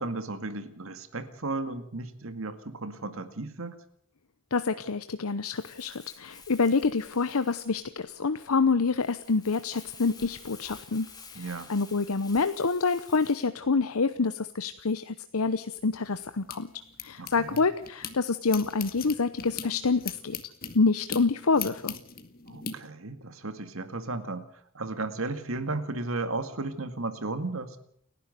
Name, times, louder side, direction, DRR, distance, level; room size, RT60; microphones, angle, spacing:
voice 1, 0.0-3.8 11.4-11.7 17.2-17.6 22.5-24.5 24.7-27.8, right 2 dB, 65° right, 10 dB, 2.0 m, -34 dB
voice 2, 4.5-11.1 11.3-16.7 17.0-20.4 20.7-21.9, left 4 dB, 80° left, 12 dB, 0.8 m, -27 dB
Crumpling crinkling, 5.5-13.5, left 5 dB, 20° left, 3.2 m, -51 dB
sound 1, 15.8-18.1 18.5-22.7, left 7 dB, 45° left, 1.9 m, -39 dB
30.0 x 11.0 x 7.9 m, 0.66 s
head